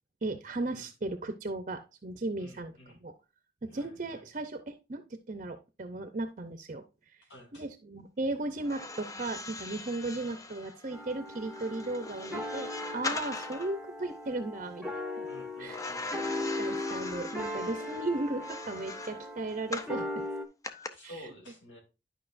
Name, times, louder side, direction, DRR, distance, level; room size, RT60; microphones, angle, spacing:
voice 1, 0.2-2.7 3.0-3.1 3.6-6.8 7.5-15.3 15.6-15.8 16.3-20.2 21.0-21.1, right 2 dB, 45° right, 0.7 m, -36 dB
voice 2, 2.4-3.0 3.7-4.2 7.3-7.7 15.3-16.1 20.9-21.8, equal, 85° left, 2.9 m, -51 dB
sound 1, 8.6-13.8 15.7-20.0 20.6-20.9, left 3 dB, 20° left, 0.5 m, -41 dB
sound 2, 10.9-20.5, left 1 dB, 5° right, 0.9 m, -38 dB
11.0 x 5.2 x 2.5 m
head